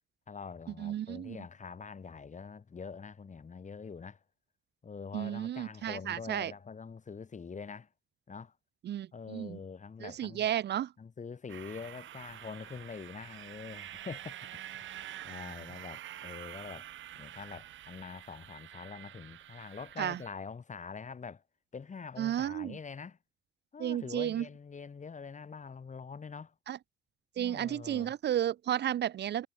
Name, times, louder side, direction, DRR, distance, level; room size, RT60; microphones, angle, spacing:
voice 1, 0.3-4.2 4.8-7.9 8.3-8.5 9.1-10.5 11.0-14.9 15.2-16.9 17.1-21.4 21.7-23.2 23.7-26.5 27.4-28.1, left 5 dB, 40° left, 6.6 m, -45 dB
voice 2, 0.8-1.4 5.1-6.5 8.8-9.6 10.0-10.9 20.0-20.2 22.2-22.8 23.8-24.4 26.7-26.8 27.4-29.5, right 11 dB, 60° right, 0.7 m, -33 dB
sound 1, 11.5-20.3, right 12 dB, 75° right, 6.4 m, -47 dB
cardioid pair, 90°, 20 cm